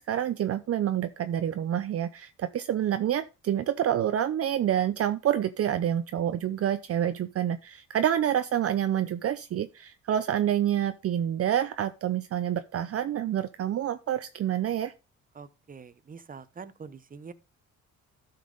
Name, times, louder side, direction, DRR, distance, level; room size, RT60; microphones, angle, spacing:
voice 1, 0.0-14.9, right 10 dB, 50° right, 0.6 m, -28 dB
voice 2, 15.3-17.3, right 5 dB, 30° right, 0.9 m, -45 dB
12.0 x 5.8 x 3.9 m
cardioid pair, 90°, 30 cm